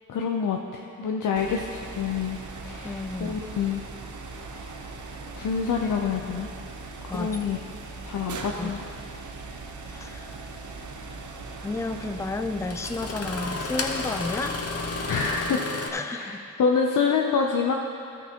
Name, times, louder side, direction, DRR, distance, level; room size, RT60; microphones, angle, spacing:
voice 1, 0.1-2.4 2.6-3.8 5.3-6.5 7.0-7.6 8.1-8.9 15.1-15.6 16.0-17.7, left 6 dB, 85° left, 1 dB, 0.6 m, -27 dB
sound 1, 1.3-15.5, right 3 dB, 75° right, 0.8 m, -40 dB
voice 2, 2.8-3.4 7.1-7.4 8.6-8.8 9.9-10.5 11.6-14.6 15.9-16.5, left 3 dB, 10° left, 9 dB, 0.3 m, -32 dB
Engine starting, 10.3-10.4 12.0-12.1 12.6-15.9, left 3 dB, 55° left, 0.9 m, -32 dB
13.0 x 9.1 x 2.9 m, 2.6 s
cardioid pair, 65°, 30 cm